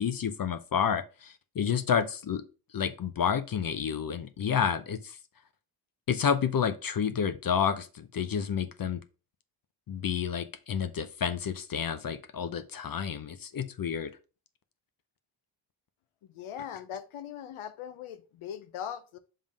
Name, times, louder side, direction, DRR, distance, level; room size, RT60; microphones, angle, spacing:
voice 1, 0.0-2.4 2.7-5.2 6.1-9.0 9.9-14.1, left 7 dB, 45° left, 0.7 m, -30 dB
voice 2, 16.3-19.2, left 9 dB, 85° left, 0.7 m, -40 dB
5.3 x 3.7 x 5.0 m
cardioid pair, 95°, 47 cm